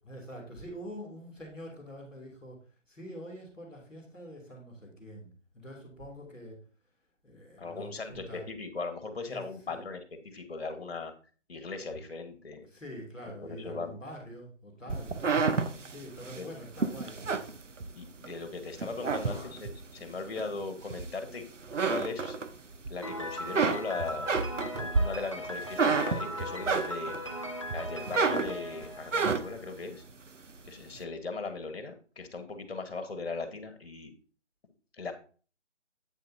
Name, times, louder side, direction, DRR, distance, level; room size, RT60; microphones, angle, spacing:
voice 1, 0.0-6.6 7.2-8.5 9.2-9.8 12.6-15.6 15.9-17.4 19.2-19.5, equal, ahead, -15 dB, 0.8 m, -45 dB
voice 2, 7.6-11.1 11.5-12.7 13.4-14.0 14.9-15.0 16.3-16.5 17.9-21.5 21.8-22.4 22.9-24.4 24.8-27.2 27.7-30.0 30.6-34.1 34.9-35.1, left 3 dB, 55° left, 8 dB, 1.6 m, -38 dB
sound 1, 14.9-18.3 18.7-19.8 20.4-21.3 21.6-22.9 23.2-27.3 27.7-29.7, right 4 dB, 75° right, 1.0 m, -30 dB
Piano, 23.0-29.8, equal, 25° left, 0.5 m, -39 dB
8.3 x 7.4 x 2.8 m, 0.39 s
figure-of-eight pair, 155°, 37 cm